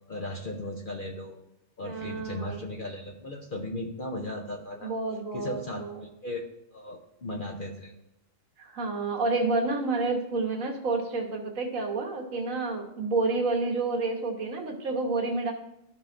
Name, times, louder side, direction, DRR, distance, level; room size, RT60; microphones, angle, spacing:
voice 1, 0.1-1.4 1.8-4.9 5.3-6.4 6.7-7.9, left 1 dB, 50° left, 1 dB, 0.7 m, -36 dB
voice 2, 1.8-2.6 4.8-6.0 8.6-15.5, right 3 dB, 70° right, 1 dB, 1.5 m, -29 dB
13.0 x 5.4 x 2.6 m, 0.84 s
omnidirectional pair, 1.5 m